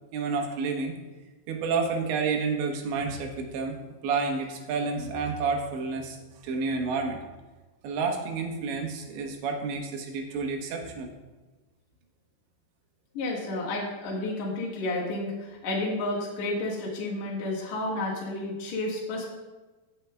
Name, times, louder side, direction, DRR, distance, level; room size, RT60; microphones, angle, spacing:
voice 1, 0.1-0.9 1.5-3.8 4.0-6.2 6.4-7.2 7.8-11.1, right 4 dB, 90° right, 3 dB, 3.4 m, -29 dB
voice 2, 13.1-19.3, left 2 dB, 55° left, -5 dB, 2.2 m, -31 dB
17.0 x 7.1 x 2.2 m, 1.2 s
omnidirectional pair, 5.0 m